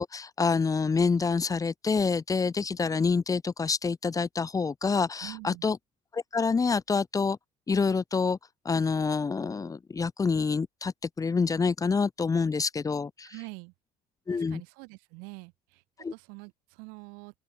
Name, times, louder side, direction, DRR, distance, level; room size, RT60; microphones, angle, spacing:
voice 1, 0.0-5.8 6.1-7.4 7.7-8.4 8.6-13.3 14.3-14.6 16.0-16.1, left 4 dB, 25° left, 1.3 m, -27 dB
voice 2, 5.2-5.7 13.2-13.7 14.3-15.8 16.1-17.4, right 32 dB, 90° right, 3.0 m, -45 dB
open air
cardioid pair, 110°, 15 cm